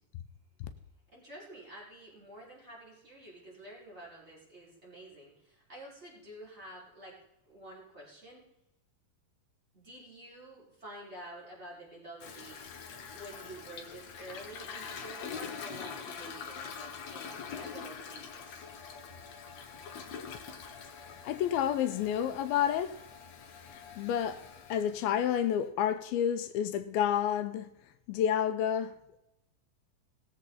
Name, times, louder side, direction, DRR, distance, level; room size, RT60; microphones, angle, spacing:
voice 1, 1.1-7.2 7.5-8.4 9.7-12.6 13.1-18.6, right 1 dB, 15° right, 5.5 m, -49 dB
Toilet flush, 12.2-25.6, left 6 dB, 60° left, 2.0 m, -45 dB
voice 2, 21.2-22.9 23.7-24.4 24.7-27.7 28.1-28.9, left 9 dB, 85° left, 2.6 m, -29 dB
20.0 x 7.6 x 4.2 m
omnidirectional pair, 4.3 m